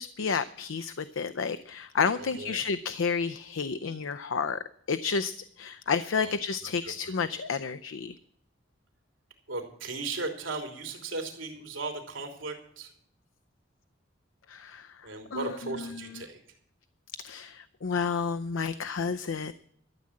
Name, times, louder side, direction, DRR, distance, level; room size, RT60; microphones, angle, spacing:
voice 1, 0.0-8.2 14.5-16.2 17.2-19.5, left 5 dB, 80° left, 11 dB, 0.5 m, -31 dB
voice 2, 2.2-2.6 6.2-6.3 6.6-6.7 7.1-7.2 9.5-12.9 15.0-16.4, right 3 dB, 80° right, 4 dB, 3.1 m, -36 dB
13.0 x 7.6 x 8.5 m, 0.65 s
head